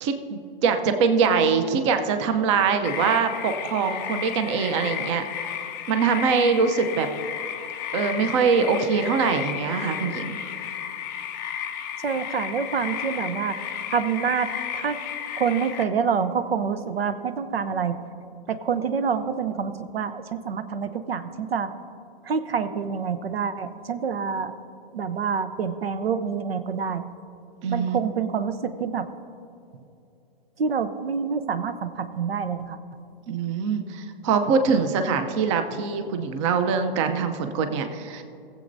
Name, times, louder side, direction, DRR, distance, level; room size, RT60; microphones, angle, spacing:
voice 1, 0.0-5.6 5.9-7.1 7.9-10.4 27.6-28.3 33.3-38.2, right 5 dB, 30° right, 8 dB, 0.6 m, -23 dB
sound 1, 2.8-15.8, left 9 dB, 20° left, 0.4 m, -33 dB
voice 2, 12.0-13.6 13.9-15.0 15.3-18.0 18.5-21.7 22.3-24.5 24.9-27.0 27.7-29.1 30.6-32.8, right 6 dB, 85° right, 11 dB, 0.8 m, -27 dB
20.0 x 7.7 x 2.6 m, 2.7 s
hypercardioid pair, 145°, 29 cm